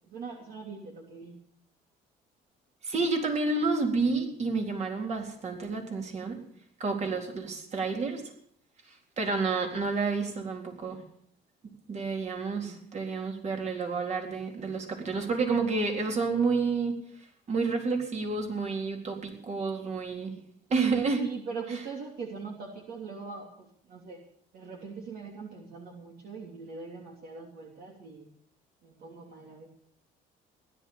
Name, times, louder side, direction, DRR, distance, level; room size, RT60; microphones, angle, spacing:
voice 1, 0.1-1.4 12.5-12.9 21.1-24.3 24.5-28.3 28.8-29.7, right 5 dB, 60° right, 0 dB, 3.0 m, -42 dB
voice 2, 2.8-6.4 6.8-8.2 9.2-11.0 11.9-17.0 17.5-20.3 20.7-21.2, right 4 dB, 40° right, 2 dB, 4.0 m, -29 dB
16.5 x 11.5 x 6.9 m, 0.66 s
cardioid pair, 110°, 17 cm